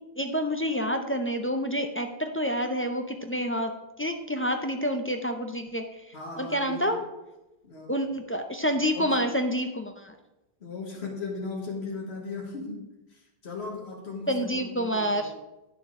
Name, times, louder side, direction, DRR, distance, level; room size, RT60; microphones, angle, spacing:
voice 1, 0.2-6.0 6.4-7.0 7.9-10.2 14.3-15.3, equal, 20° left, 5 dB, 0.4 m, -28 dB
voice 2, 6.1-7.0 7.6-8.0 8.9-9.2 10.6-12.8 13.1-15.3, left 3 dB, 85° left, -1 dB, 1.6 m, -37 dB
9.3 x 6.9 x 3.6 m, 0.99 s
omnidirectional pair, 1.1 m